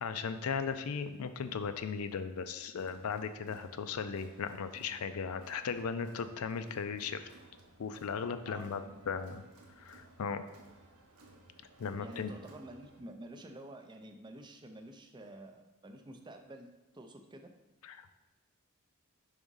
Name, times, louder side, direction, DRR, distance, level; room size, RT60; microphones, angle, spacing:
voice 1, 0.0-7.3 7.8-9.4 9.8-10.4 11.8-12.3 17.8-18.2, left 6 dB, 80° left, 10 dB, 0.4 m, -37 dB
Crowd, 2.8-13.0, right 2 dB, 85° right, 0.9 m, -59 dB
voice 2, 8.4-9.1 12.0-16.7 16.9-17.5, right 1 dB, 20° right, 5 dB, 0.4 m, -49 dB
5.0 x 3.6 x 5.4 m, 1.1 s
head